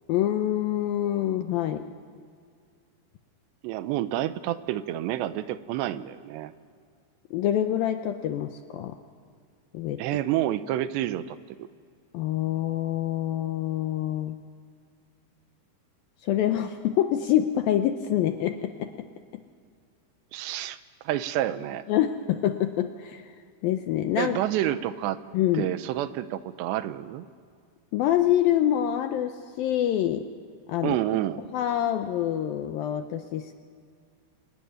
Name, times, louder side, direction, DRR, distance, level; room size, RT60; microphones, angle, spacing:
voice 1, 0.1-1.8 7.3-9.0 9.7-10.0 12.1-14.4 16.2-18.9 21.9-23.3 23.6-24.4 25.3-25.7 27.9-30.2 30.7-31.0 31.5-33.5, left 11 dB, 75° left, 7 dB, 2.2 m, -26 dB
voice 2, 3.6-6.5 10.0-11.7 20.3-20.8 21.0-21.8 24.2-25.2 25.5-27.3 30.8-31.4, right 13 dB, 80° right, 13 dB, 3.0 m, -29 dB
27.0 x 21.0 x 9.6 m, 2.2 s
omnidirectional pair, 5.0 m